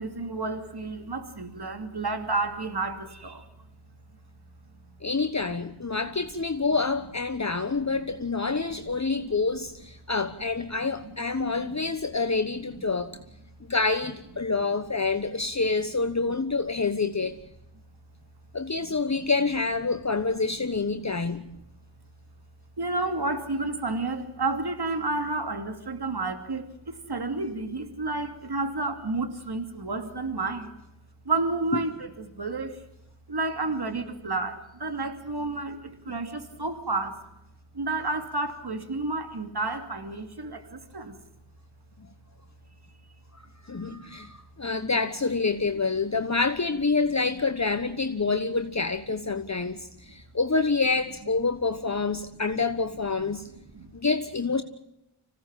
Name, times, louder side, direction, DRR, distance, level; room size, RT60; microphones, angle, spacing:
voice 1, 0.0-3.5 7.8-8.0 9.2-9.4 10.8-11.2 11.4-11.9 19.0-19.1 21.2-21.4 22.8-30.7 31.2-32.8 33.3-37.2 37.7-41.2 43.9-44.2 53.7-53.9, right 3 dB, 50° right, 2.8 m, -31 dB
voice 2, 5.0-13.1 13.7-17.3 18.5-21.4 43.6-53.5 53.9-54.6, left 4 dB, 35° left, 1.3 m, -27 dB
26.0 x 17.0 x 7.5 m
wide cardioid pair, 55°, 48 cm